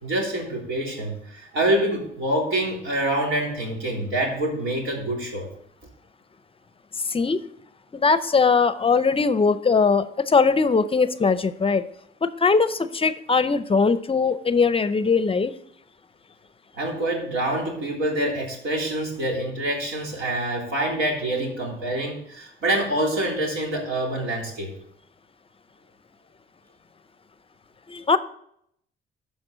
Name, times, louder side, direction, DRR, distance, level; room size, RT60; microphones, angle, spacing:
voice 1, 0.0-5.5 16.7-24.7, right 1 dB, 80° right, -1 dB, 3.3 m, -26 dB
voice 2, 7.1-7.4 7.9-11.8 12.2-15.5 27.9-28.2, left 4 dB, 30° left, 13 dB, 0.5 m, -20 dB
13.5 x 5.2 x 3.8 m, 0.71 s
cardioid pair, 90°, 20 cm